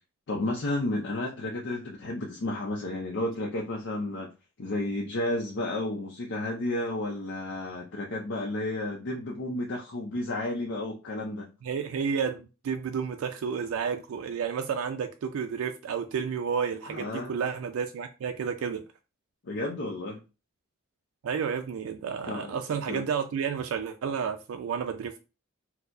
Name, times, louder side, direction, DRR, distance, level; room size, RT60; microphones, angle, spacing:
voice 1, 0.3-4.3 4.6-11.5 16.9-17.3 19.4-20.2 22.2-22.6 22.9-23.0, left 1 dB, 60° left, 0.5 m, -32 dB
voice 2, 11.6-18.8 21.2-25.2, right 6 dB, 80° right, 0.3 m, -31 dB
4.3 x 2.0 x 2.5 m
head